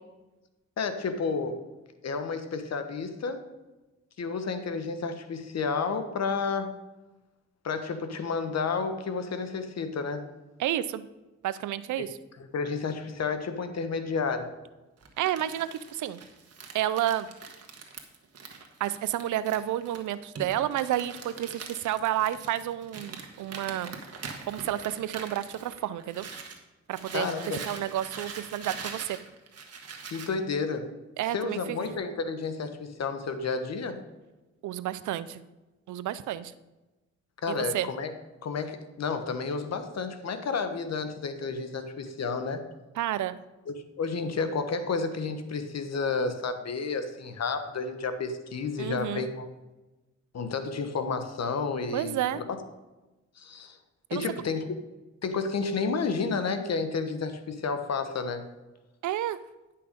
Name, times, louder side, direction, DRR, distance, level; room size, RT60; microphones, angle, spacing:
voice 1, 0.8-1.6 2.0-3.5 4.2-6.7 7.6-10.2 12.5-14.5 27.1-27.6 30.1-30.9 31.3-34.0 37.4-38.1 38.4-42.6 43.7-49.5 50.3-52.6 53.4-53.8 54.1-54.7 55.2-58.5, left 4 dB, 60° left, 9 dB, 1.1 m, -31 dB
voice 2, 10.6-11.0 11.4-12.2 15.2-16.2 16.7-17.3 18.8-24.0 24.5-26.2 26.9-29.2 31.2-31.8 34.6-35.4 35.9-36.5 37.5-37.9 43.0-43.3 48.8-49.3 51.9-52.4 54.1-54.2 59.0-59.4, right 12 dB, 90° right, 16 dB, 0.5 m, -30 dB
Crumpling crinkling, 15.0-26.6 26.9-30.4, right 5 dB, 60° right, 1.4 m, -43 dB
10.0 x 5.8 x 5.1 m, 1.1 s
cardioid pair, 70°, 29 cm